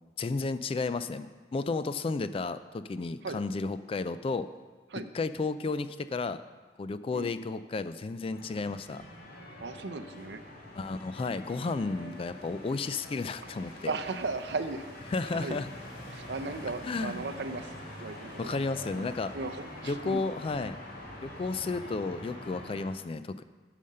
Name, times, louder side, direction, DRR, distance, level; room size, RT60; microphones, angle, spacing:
voice 1, 0.2-4.5 4.9-6.4 6.8-9.0 10.8-13.9 15.1-15.7 16.8-17.2 18.4-19.3 19.8-20.8 21.2-23.4, left 3 dB, 30° left, 12 dB, 0.3 m, -33 dB
sound 1, 8.3-22.9, left 1 dB, 60° left, 2.6 m, -45 dB
voice 2, 9.6-10.4 12.0-12.2 13.8-15.6 16.1-17.7 18.0-18.6 19.0-19.1 19.3-20.2, right 3 dB, 65° right, 9 dB, 0.6 m, -36 dB
11.0 x 5.1 x 6.7 m, 1.4 s
head